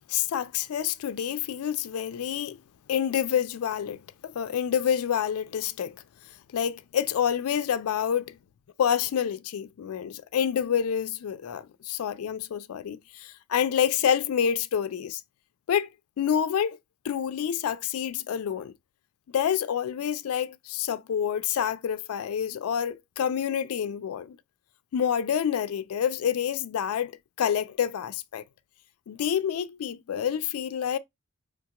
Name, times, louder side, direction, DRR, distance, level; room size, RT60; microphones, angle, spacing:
voice 1, 0.1-2.6 2.9-6.0 6.5-8.4 8.8-15.2 15.7-15.9 16.2-16.8 17.0-18.7 19.3-24.4 24.9-27.1 27.4-28.4 29.1-31.0, left 8 dB, 85° left, 0.3 m, -28 dB
4.9 x 2.3 x 2.8 m
head